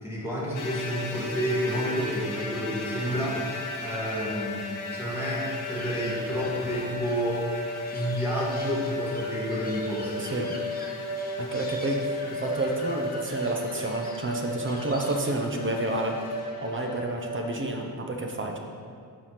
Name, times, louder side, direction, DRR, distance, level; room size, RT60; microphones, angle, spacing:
voice 1, 0.0-3.5 3.8-4.6 4.9-7.5 7.9-10.3, equal, 5° right, -7 dB, 1.6 m, -30 dB
sound 1, 0.5-17.6, left 2 dB, 50° left, 1.0 m, -34 dB
sound 2, 5.4-15.5, left 2 dB, 20° left, 0.8 m, -46 dB
voice 2, 10.2-10.5 11.4-16.2 16.6-18.6, right 2 dB, 30° right, 2 dB, 0.7 m, -30 dB
5.9 x 4.8 x 5.7 m, 2.2 s
wide cardioid pair, 130°, 41 cm